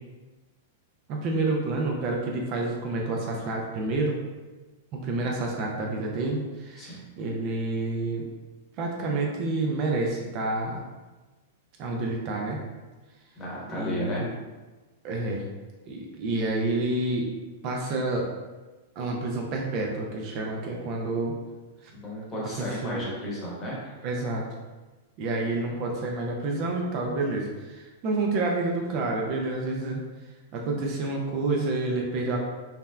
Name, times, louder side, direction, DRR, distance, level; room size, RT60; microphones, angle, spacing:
voice 1, 1.1-4.1 4.9-8.3 8.8-10.8 11.8-12.6 13.7-14.3 15.0-15.4 15.9-17.3 17.6-18.3 19.0-21.3 21.8-21.9 22.6-23.1 24.0-24.4 25.2-30.0 30.5-32.4, right 2 dB, 40° right, 0 dB, 0.4 m, -29 dB
voice 2, 13.4-14.2 21.9-23.9, equal, 20° left, -5 dB, 1.0 m, -34 dB
3.3 x 2.0 x 2.2 m, 1.2 s
hypercardioid pair, 140°, 0 cm